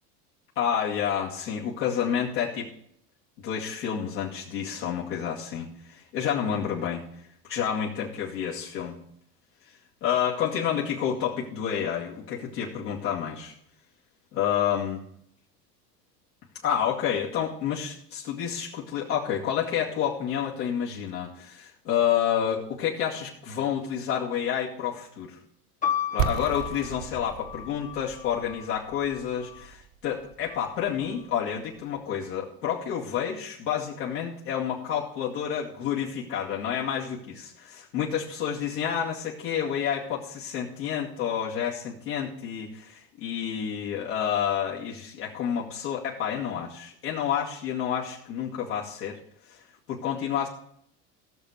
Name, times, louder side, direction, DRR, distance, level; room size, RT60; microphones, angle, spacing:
voice 1, 0.6-2.7 3.4-7.0 7.4-9.0 10.0-13.5 14.3-15.0 16.6-25.4 26.1-49.2 49.5-49.6 49.9-50.5, left 8 dB, 80° left, -5 dB, 2.4 m, -29 dB
sound 1, 25.8-29.7 30.5-31.2, left 9 dB, 15° left, 0.8 m, -35 dB
sound 2, 26.2-31.9, right 9 dB, 65° right, 1.2 m, -35 dB
16.0 x 6.8 x 5.1 m, 0.70 s
hypercardioid pair, 85°, 49 cm